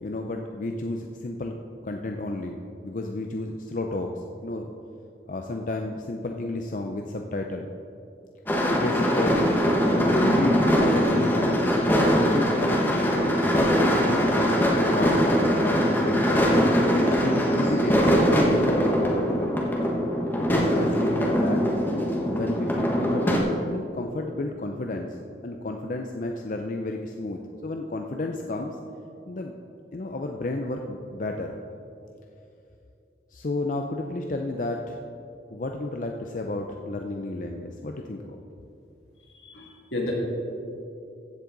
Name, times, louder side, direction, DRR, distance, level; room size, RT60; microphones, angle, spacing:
voice 1, 0.0-2.6 2.8-4.7 5.3-7.7 8.6-9.4 9.9-11.7 12.0-15.3 15.6-19.6 20.3-21.7 22.3-25.2 25.4-28.8 29.3-29.5 29.9-31.5 33.3-35.0 35.5-38.4, left 2 dB, 45° left, 3 dB, 0.5 m, -32 dB
sound 1, 8.5-23.4, equal, 10° left, 1.1 m, -22 dB
voice 2, 39.2-40.1, left 1 dB, 80° left, -3 dB, 2.5 m, -33 dB
15.0 x 7.4 x 3.9 m, 2.6 s
head